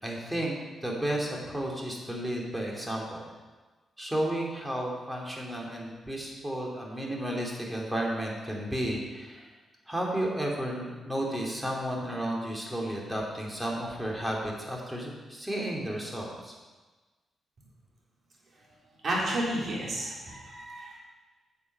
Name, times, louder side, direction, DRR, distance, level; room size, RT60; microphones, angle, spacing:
voice 1, 0.0-3.3 4.0-9.5 9.9-16.5, right 1 dB, 10° right, -2 dB, 2.8 m, -33 dB
voice 2, 19.0-21.0, right 1 dB, 50° right, -4 dB, 3.5 m, -31 dB
8.4 x 7.2 x 5.6 m, 1.3 s
cardioid pair, 70°, 0 cm